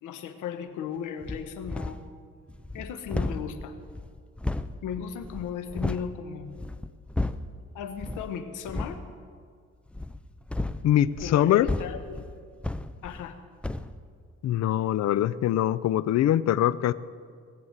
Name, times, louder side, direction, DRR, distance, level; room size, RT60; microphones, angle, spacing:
voice 1, 0.0-2.0 2.7-3.7 4.8-6.6 7.7-9.0 11.2-12.3 13.0-13.4, left 7 dB, 90° left, 8 dB, 1.2 m, -36 dB
sound 1, 1.2-2.1 2.5-6.1 6.5-7.6 8.0-8.3 8.6-9.0 9.9-13.4 13.6-13.9, left 2 dB, 5° left, 0.5 m, -33 dB
voice 2, 10.8-11.7 14.4-16.9, left 12 dB, 60° left, 17 dB, 0.5 m, -23 dB
19.0 x 7.1 x 8.1 m, 2.1 s
cardioid pair, 90°, 30 cm